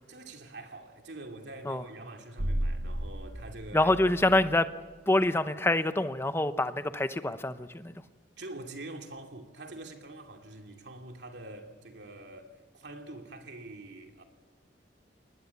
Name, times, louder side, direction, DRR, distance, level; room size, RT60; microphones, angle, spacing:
voice 1, 0.1-3.9 8.4-14.2, right 2 dB, 75° right, 2.6 m, -45 dB
sound 1, 2.4-4.8, equal, 55° right, 1.7 m, -34 dB
voice 2, 3.7-4.7 5.1-7.9, left 2 dB, 15° left, 0.8 m, -26 dB
22.5 x 19.5 x 8.3 m
head